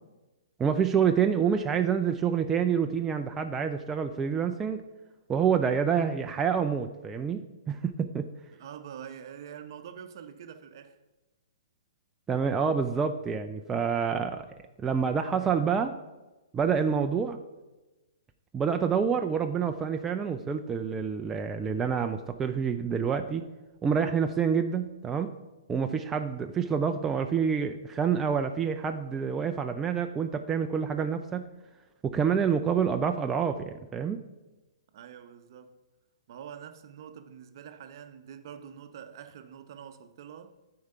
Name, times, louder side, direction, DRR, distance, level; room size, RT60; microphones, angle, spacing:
voice 1, 0.6-4.8 5.3-8.3 12.3-14.5 14.8-15.9 16.5-17.4 18.5-23.5 23.8-25.3 25.7-31.5 32.0-34.2, right 7 dB, 15° right, 0.4 m, -27 dB
voice 2, 8.6-11.0 34.9-35.8 36.3-40.5, right 8 dB, 50° right, 0.7 m, -45 dB
9.4 x 4.7 x 5.5 m
figure-of-eight pair, 120°, 3 cm